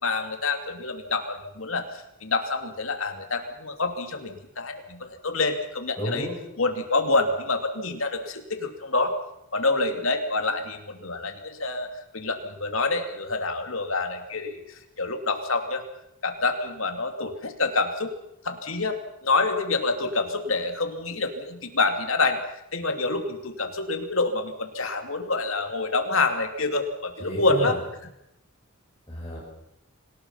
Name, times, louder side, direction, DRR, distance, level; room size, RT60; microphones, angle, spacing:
voice 1, 0.0-6.3 6.6-9.2 9.5-11.9 12.1-15.8 16.2-18.1 18.4-22.4 22.7-27.8, left 3 dB, 65° left, 6 dB, 2.9 m, -27 dB
voice 2, 6.0-6.4 27.2-27.8 29.1-29.4, equal, 20° left, -7 dB, 7.5 m, -31 dB
27.0 x 18.5 x 5.8 m, 0.81 s
head